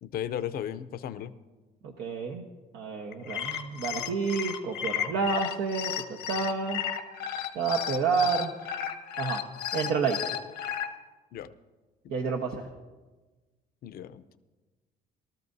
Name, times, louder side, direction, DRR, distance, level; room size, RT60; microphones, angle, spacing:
voice 1, 0.0-1.3 11.3-11.6 12.0-12.1 13.8-14.4, left 10 dB, 65° left, 12 dB, 0.7 m, -36 dB
voice 2, 1.8-2.4 2.7-5.9 6.3-6.8 7.5-8.5 9.2-9.4 9.7-10.2 12.1-12.7, right 5 dB, 75° right, 1 dB, 1.1 m, -29 dB
sound 1, 3.1-10.9, left 10 dB, 80° left, 1.1 m, -33 dB
22.5 x 13.0 x 2.7 m, 1.2 s
cardioid pair, 110°, 17 cm